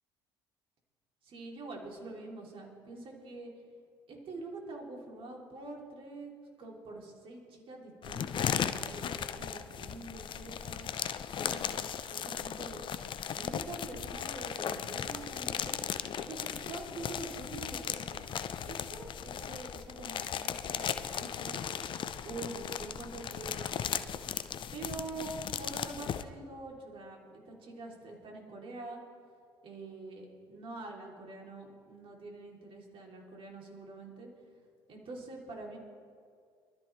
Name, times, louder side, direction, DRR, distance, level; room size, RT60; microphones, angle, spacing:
voice 1, 1.2-3.5 4.1-6.3 6.6-10.9 11.3-12.8 13.3-15.8 16.2-18.2 18.6-21.6 22.2-24.2 24.7-29.0 29.6-34.3 34.9-35.8, right 2 dB, 50° right, -1 dB, 3.6 m, -45 dB
sound 1, 8.0-26.2, left 8 dB, 40° left, 0.7 m, -37 dB
23.0 x 13.0 x 3.5 m, 2.2 s
figure-of-eight pair, 55°, 12 cm